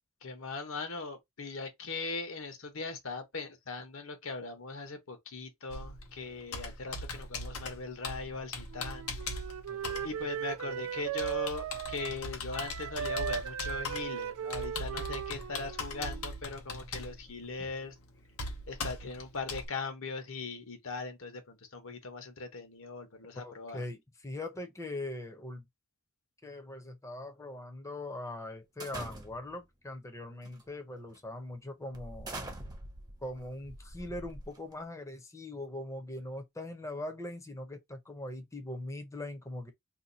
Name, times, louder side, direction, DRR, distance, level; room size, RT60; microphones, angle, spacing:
voice 1, 0.2-9.3 10.0-18.0 18.7-23.9, left 3 dB, 65° left, 1.0 m, -40 dB
Computer keyboard, 5.7-19.7, left 2 dB, 90° left, 0.9 m, -41 dB
Wind instrument woodwind instrument, 8.7-12.3 12.5-16.4, right 8 dB, 80° right, 0.3 m, -38 dB
voice 2, 9.7-10.1 10.6-10.8 23.4-25.6 26.4-32.4 33.2-39.7, left 1 dB, 15° left, 0.7 m, -41 dB
sound 1, 28.8-29.6 30.4-30.7 31.1-31.3 31.9-34.8, right 1 dB, 20° right, 0.7 m, -44 dB
2.8 x 2.3 x 3.9 m
head